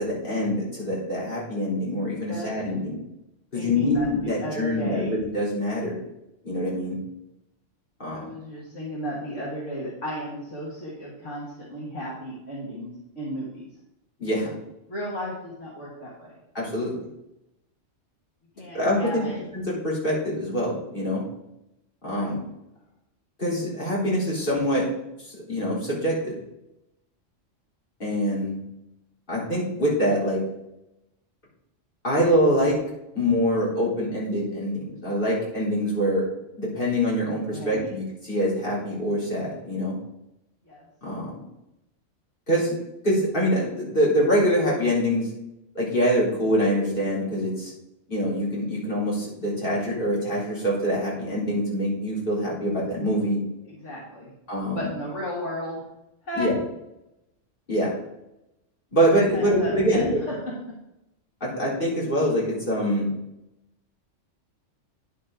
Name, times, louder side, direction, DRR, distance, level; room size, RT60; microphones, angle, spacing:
voice 1, 0.0-3.0 3.5-6.0 6.4-7.0 8.0-8.3 14.2-14.5 16.5-16.9 18.7-19.2 19.6-21.2 22.0-22.4 23.4-24.9 25.2-26.4 28.0-28.5 29.3-30.4 32.0-32.8 33.2-36.3 36.6-39.9 41.0-41.4 42.5-42.8 43.0-45.3 45.7-47.7 48.1-53.4 54.5-54.9 56.4-56.6 57.7-57.9 58.9-60.2 61.4-63.1, equal, 45° left, -6 dB, 3.8 m, -24 dB
voice 2, 3.5-5.1 8.1-13.7 14.9-16.3 18.6-19.4 22.1-22.3 37.5-38.0 40.7-40.9 53.6-54.3 54.7-55.8 56.2-56.5 59.0-60.3, equal, 75° left, -5 dB, 2.6 m, -34 dB
9.9 x 8.4 x 3.8 m, 0.87 s
omnidirectional pair, 1.3 m